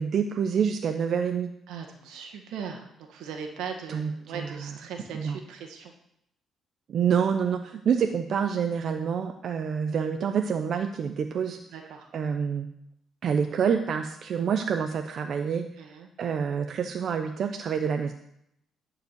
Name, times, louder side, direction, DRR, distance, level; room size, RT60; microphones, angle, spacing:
voice 1, 0.0-1.5 3.9-4.8 5.1-5.4 6.9-11.6 12.1-12.7 13.2-18.1, right 7 dB, 60° right, 6 dB, 0.8 m, -27 dB
voice 2, 1.7-5.9 11.7-12.1 15.8-16.1, right 6 dB, 90° right, 4 dB, 1.8 m, -39 dB
11.5 x 5.0 x 8.2 m, 0.75 s
cardioid pair, 90°, 0 cm